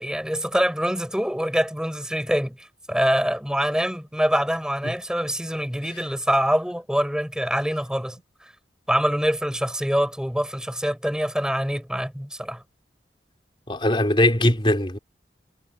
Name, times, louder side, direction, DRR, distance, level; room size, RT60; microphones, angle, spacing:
voice 1, 0.0-8.2 8.9-12.6, equal, 5° right, 6.0 m, -25 dB
voice 2, 13.7-15.0, left 1 dB, 30° left, 3.4 m, -20 dB
head